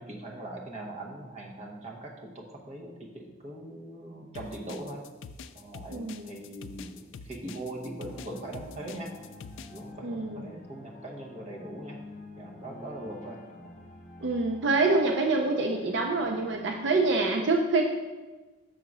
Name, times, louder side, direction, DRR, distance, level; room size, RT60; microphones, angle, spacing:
voice 1, 0.0-5.0 5.5-9.1 9.7-12.0 12.4-13.7, right 1 dB, 30° right, -1 dB, 0.9 m, -41 dB
sound 1, 4.3-9.8, left 5 dB, 70° left, 0.3 m, -45 dB
voice 2, 5.9-6.3 10.0-10.5 14.2-17.8, right 3 dB, 60° right, 2 dB, 0.5 m, -26 dB
sound 2, 8.1-17.2, left 2 dB, 35° left, 0.8 m, -48 dB
6.4 x 3.8 x 6.0 m, 1.2 s
head